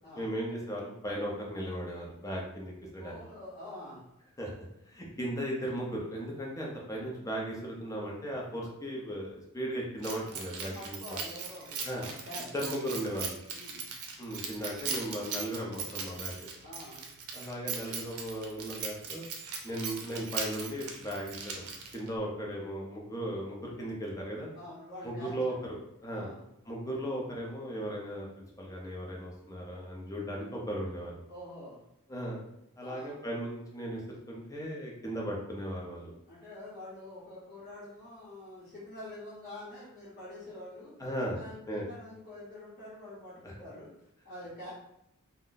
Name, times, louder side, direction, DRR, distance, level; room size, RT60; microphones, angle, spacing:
voice 1, 0.2-3.1 4.4-4.5 4.9-11.2 11.8-12.1 12.5-13.4 14.2-16.3 17.3-19.2 19.6-24.5 25.0-25.5 26.0-26.3 26.7-31.1 32.1-32.4 32.8-34.0 34.3-36.1 41.0-41.4 41.7-41.8 43.4-43.5, equal, 15° left, -2 dB, 0.6 m, -36 dB
voice 2, 3.0-4.0 10.2-12.4 13.5-13.9 16.6-17.0 24.5-25.6 26.1-26.4 31.3-31.8 32.8-33.2 36.3-40.9 41.4-43.9 44.2-44.7, left 1 dB, 40° left, -10 dB, 0.9 m, -46 dB
Keys jangling, 10.0-22.2, right 5 dB, 90° right, 0.5 m, -39 dB
2.5 x 2.1 x 3.8 m, 0.82 s
head